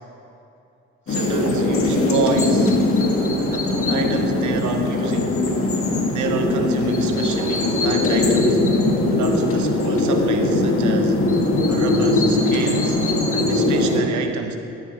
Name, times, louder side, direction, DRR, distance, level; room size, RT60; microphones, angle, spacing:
sound 1, 1.1-14.0, left 2 dB, 45° left, 2.0 m, -20 dB
voice 1, 1.1-2.8 3.5-5.4 6.1-8.6 9.1-11.2 11.7-13.0 13.3-14.6, right 6 dB, 75° right, 5 dB, 1.1 m, -29 dB
12.5 x 9.9 x 4.4 m, 2.6 s
cardioid pair, 90°, 30 cm